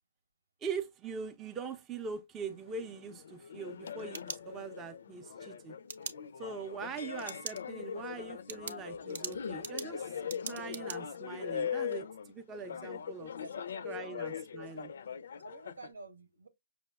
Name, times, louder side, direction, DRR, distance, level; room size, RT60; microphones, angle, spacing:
voice 1, 0.6-5.8 6.4-10.2 10.5-13.3 13.8-14.9, right 5 dB, 20° right, 0.5 m, -42 dB
sound 1, 2.5-15.9, left 7 dB, 65° left, 0.4 m, -41 dB
sound 2, 3.7-4.9 5.9-6.1 7.2-7.6 8.0-8.1 8.5-11.0, right 5 dB, 65° right, 0.7 m, -42 dB
voice 2, 13.4-14.1 14.6-14.7 15.4-16.5, right 3 dB, 85° right, 1.2 m, -50 dB
5.9 x 2.0 x 2.2 m
hypercardioid pair, 135°, 0 cm